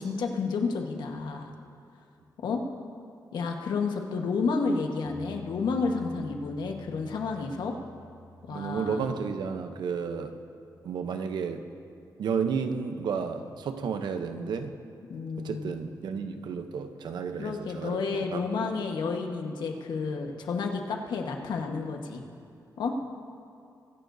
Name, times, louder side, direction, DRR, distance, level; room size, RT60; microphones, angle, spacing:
voice 1, 0.0-1.5 2.4-2.6 3.3-7.8 8.5-9.1 15.1-15.7 17.4-22.2 22.8-23.0, left 4 dB, 90° left, 3 dB, 1.3 m, -31 dB
sound 1, 5.0-15.3, equal, 20° left, 1.9 m, -52 dB
voice 2, 8.5-10.3 10.8-11.7 12.2-14.7 15.4-18.4 18.7-18.8, right 6 dB, 80° right, 7 dB, 0.8 m, -32 dB
23.5 x 11.5 x 2.7 m, 2.5 s
wide cardioid pair, 170°, 7 cm